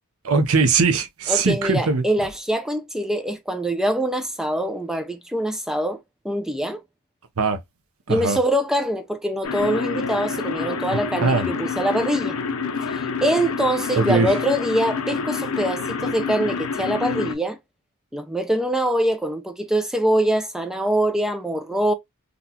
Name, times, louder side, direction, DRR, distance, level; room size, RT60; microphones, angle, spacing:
voice 1, 0.2-2.0 7.4-7.6 8.1-8.4 11.2-11.5 14.0-14.3, right 4 dB, 70° right, 0.7 m, -20 dB
voice 2, 1.3-6.8 8.1-12.4 12.9-17.6 18.1-21.9, right 1 dB, ahead, 0.4 m, -24 dB
sound 1, 9.4-17.3, left 5 dB, 70° left, 0.6 m, -28 dB
sound 2, 9.6-13.5, equal, 45° left, 1.6 m, -37 dB
3.9 x 2.3 x 2.7 m
head